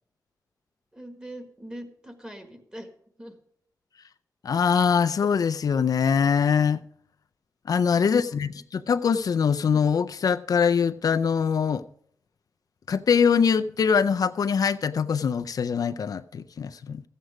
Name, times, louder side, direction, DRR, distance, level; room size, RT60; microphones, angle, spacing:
voice 1, 0.9-2.9 3.2-3.3 7.9-8.4, right 1 dB, 10° right, 1.6 m, -42 dB
voice 2, 4.4-6.8 7.7-11.8 12.9-17.0, left 6 dB, 65° left, 0.4 m, -23 dB
14.0 x 8.0 x 4.9 m
wide cardioid pair, 135°, 7 cm